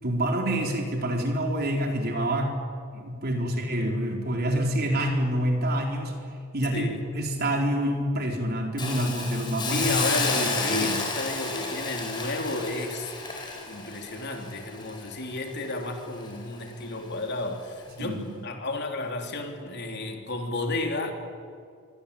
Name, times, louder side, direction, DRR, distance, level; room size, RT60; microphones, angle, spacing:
voice 1, 0.0-2.5 2.9-6.1 6.5-11.0 18.0-18.3, right 1 dB, 45° right, 2 dB, 4.1 m, -27 dB
voice 2, 6.7-7.0 9.6-13.3 13.7-21.1, left 2 dB, 50° left, 3 dB, 3.4 m, -32 dB
Hiss, 8.8-15.8 16.2-16.4, left 3 dB, 20° left, 5.1 m, -31 dB
26.0 x 24.0 x 8.7 m, 2.3 s
head